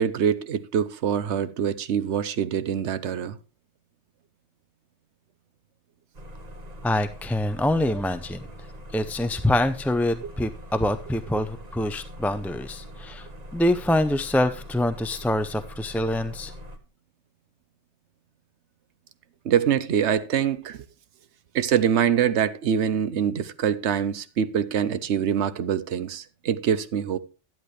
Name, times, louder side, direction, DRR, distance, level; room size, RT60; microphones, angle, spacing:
voice 1, 0.0-3.4 19.4-20.8 21.5-27.2, right 8 dB, 75° right, 1.1 m, -24 dB
sound 1, 6.1-16.8, equal, 35° right, 1.3 m, -42 dB
voice 2, 6.8-8.5 8.9-13.3 13.5-16.5, left 1 dB, ahead, 0.4 m, -25 dB
12.0 x 11.0 x 3.2 m
omnidirectional pair, 1.2 m